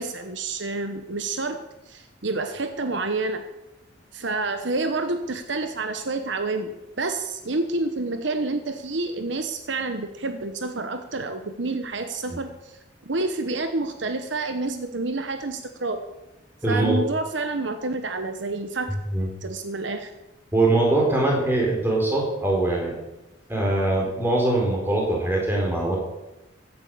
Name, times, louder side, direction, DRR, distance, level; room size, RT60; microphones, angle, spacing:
voice 1, 0.0-1.6 1.9-3.4 4.1-12.8 13.1-16.0 16.7-18.9 19.4-20.1, right 3 dB, 70° right, 7 dB, 1.1 m, -28 dB
voice 2, 16.6-17.0 19.1-19.3 20.5-22.9 23.5-26.0, right 2 dB, 10° right, -2 dB, 4.2 m, -22 dB
15.0 x 9.0 x 7.0 m, 0.97 s
head